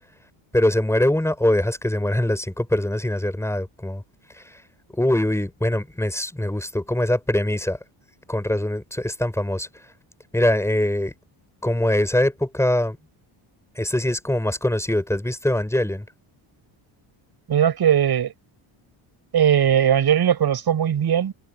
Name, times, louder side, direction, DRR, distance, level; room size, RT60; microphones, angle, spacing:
voice 1, 0.5-4.0 4.3-4.6 4.9-7.8 8.3-9.7 10.3-11.1 11.6-13.0 13.7-16.0, left 1 dB, 5° left, 6.4 m, -23 dB
voice 2, 17.5-18.3 19.3-21.3, right 9 dB, 50° right, 7.2 m, -19 dB
cardioid pair, 130°, 50 cm